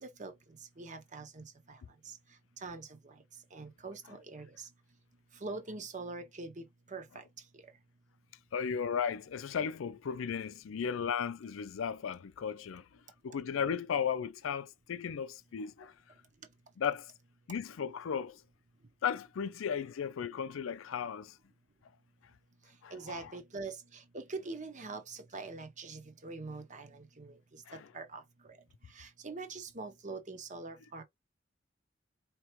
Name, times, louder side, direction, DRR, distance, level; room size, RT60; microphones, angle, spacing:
voice 1, 0.0-2.2 2.6-3.2 3.5-4.7 5.3-7.2 7.5-7.6 22.9-28.6 28.9-31.0, right 3 dB, 40° right, 0.9 m, -44 dB
voice 2, 8.5-12.8 13.2-15.9 16.8-17.1 17.5-18.4 19.0-21.4 22.8-23.3 27.7-27.9, left 7 dB, 85° left, 0.4 m, -35 dB
4.4 x 2.9 x 3.0 m
head